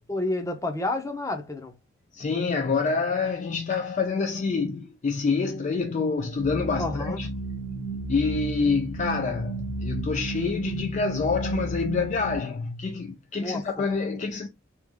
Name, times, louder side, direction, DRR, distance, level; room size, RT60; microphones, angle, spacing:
voice 1, 0.1-1.7 6.8-7.2 13.4-13.6, left 2 dB, 15° left, 0.7 m, -29 dB
voice 2, 2.1-7.3 8.1-14.5, left 4 dB, 35° left, 0.3 m, -27 dB
sound 1, 6.4-12.4, right 2 dB, 60° left, 1.7 m, -33 dB
3.5 x 2.5 x 3.5 m
head